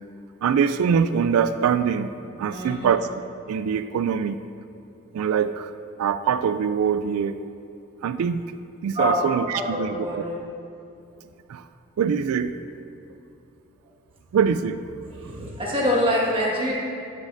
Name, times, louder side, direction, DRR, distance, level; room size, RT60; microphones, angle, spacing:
voice 1, 0.4-2.1 2.4-3.1 3.5-4.4 5.1-5.7 6.0-7.4 8.0-8.4 8.8-10.2 11.5-11.6 12.0-12.6 14.3-14.8, right 7 dB, 85° right, 11 dB, 0.3 m, -23 dB
voice 2, 2.5-2.9 8.9-9.2 9.5-10.4 15.0-16.7, equal, 25° right, -4 dB, 1.7 m, -25 dB
13.0 x 8.3 x 2.6 m, 2.7 s
head